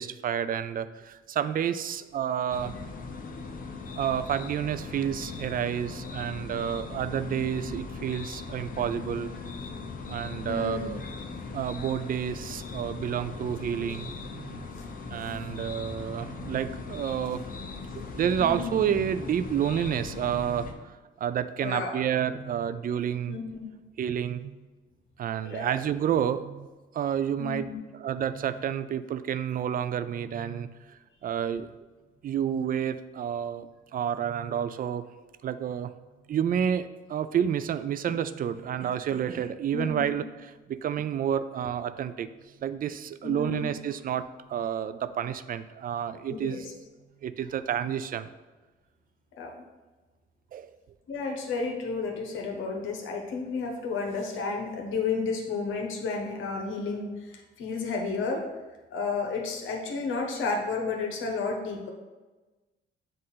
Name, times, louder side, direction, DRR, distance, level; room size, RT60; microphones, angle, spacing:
voice 1, 0.0-2.8 4.0-9.3 10.1-11.0 11.5-14.7 15.1-17.4 18.2-20.7 21.2-23.4 24.0-24.6 25.2-26.7 26.9-31.7 32.2-35.1 35.4-35.9 36.3-42.3 42.6-44.2 44.5-46.7 47.2-48.3 50.5-50.7, right 9 dB, 45° right, 13 dB, 0.4 m, -30 dB
sound 1, 2.5-20.7, left 4 dB, 45° left, 0.7 m, -39 dB
voice 2, 10.5-11.0 14.8-14.9 18.4-18.8 21.6-22.0 23.3-23.7 25.4-25.7 27.4-27.8 39.7-40.1 43.2-43.7 46.3-46.6 49.4-49.5 51.1-58.5 58.9-61.9, left 4 dB, 75° left, 1 dB, 1.0 m, -32 dB
7.6 x 2.6 x 5.6 m, 1.2 s
cardioid pair, 90°, 20 cm